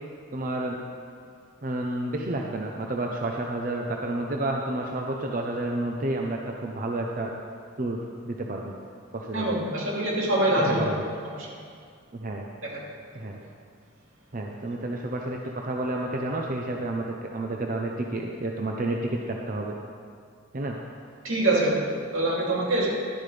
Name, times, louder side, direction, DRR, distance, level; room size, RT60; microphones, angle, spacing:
voice 1, 0.3-0.8 1.6-7.3 7.8-8.0 8.2-8.7 9.1-9.6 10.5-11.1 12.1-12.5 13.1-13.4 14.3-19.7 20.5-20.8, right 2 dB, 45° right, 0 dB, 0.7 m, -30 dB
voice 2, 9.3-10.9 21.2-22.9, right 1 dB, 85° right, -5 dB, 2.9 m, -24 dB
12.0 x 11.5 x 3.4 m, 2.2 s
head